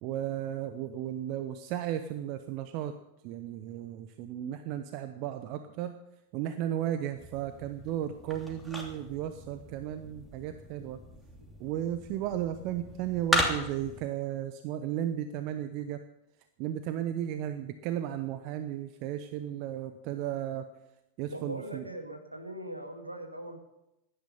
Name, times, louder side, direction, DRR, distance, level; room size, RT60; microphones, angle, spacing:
voice 1, 0.0-2.9 3.2-5.9 6.3-11.0 11.6-16.0 16.6-20.6 21.2-21.8, right 11 dB, 45° right, 9 dB, 0.9 m, -34 dB
sound 1, 7.2-14.0, equal, 5° right, 2.9 m, -36 dB
voice 2, 21.3-23.6, right 1 dB, 85° right, 4 dB, 2.1 m, -40 dB
16.5 x 11.5 x 5.6 m, 0.87 s
figure-of-eight pair, 90°, 0 cm